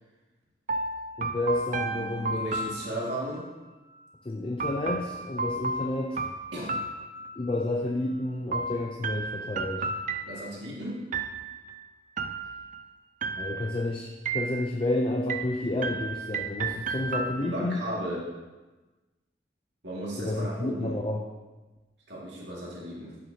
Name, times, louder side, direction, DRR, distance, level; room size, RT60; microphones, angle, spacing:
sound 1, 0.7-3.4 4.6-7.6 8.5-10.7 11.1-11.7 12.2-12.8 13.2-13.8 14.3-14.9 15.3-17.8, right 3 dB, 45° right, 0.5 m, -33 dB
voice 1, 1.2-2.4 4.2-6.2 7.4-9.9 13.4-17.8 20.2-21.3, left 1 dB, 30° left, 1 dB, 0.5 m, -30 dB
voice 2, 1.9-3.5 6.5-6.7 10.2-11.1 17.4-18.3 19.8-21.0 22.1-23.2, right 1 dB, 75° right, -5 dB, 2.1 m, -35 dB
10.5 x 6.3 x 2.8 m, 1.2 s
head